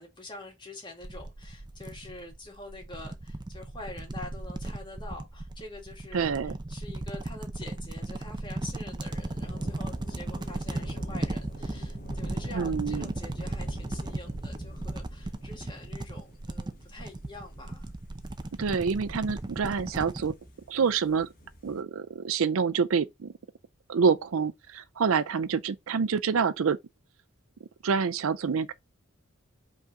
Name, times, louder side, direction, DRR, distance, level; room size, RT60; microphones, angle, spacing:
voice 1, 0.0-17.9, left 2 dB, 20° left, 2.0 m, -46 dB
sound 1, 1.0-20.4, right 2 dB, 20° right, 0.5 m, -36 dB
voice 2, 6.1-6.5 12.5-13.1 18.6-20.3 20.7-21.3 21.6-23.3 23.9-26.8 27.8-28.7, right 6 dB, 75° right, 0.5 m, -27 dB
sound 2, 9.0-21.8, equal, 40° left, 1.6 m, -46 dB
5.4 x 3.7 x 5.4 m
head